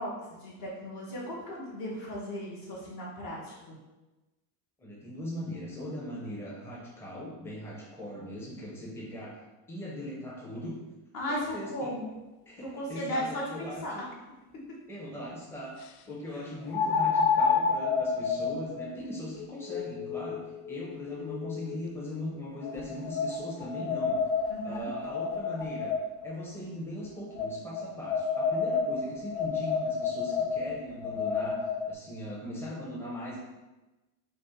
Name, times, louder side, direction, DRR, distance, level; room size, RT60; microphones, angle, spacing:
voice 1, 0.0-3.7 11.1-12.1 12.6-14.0 16.3-16.5 24.5-24.9, equal, 45° left, -5 dB, 1.2 m, -36 dB
voice 2, 4.8-9.3 9.7-10.8 11.3-11.9 12.5-14.1 14.9-15.7 16.1-20.4 20.7-24.2 24.6-25.9 26.2-31.6 31.9-33.4, left 1 dB, 5° left, -5 dB, 0.7 m, -39 dB
sound 1, 14.1-14.2 16.7-21.9 22.6-26.3 27.4-31.9, left 5 dB, 85° left, 0.6 m, -30 dB
5.4 x 2.2 x 4.3 m, 1.1 s
cardioid pair, 160°, 50 cm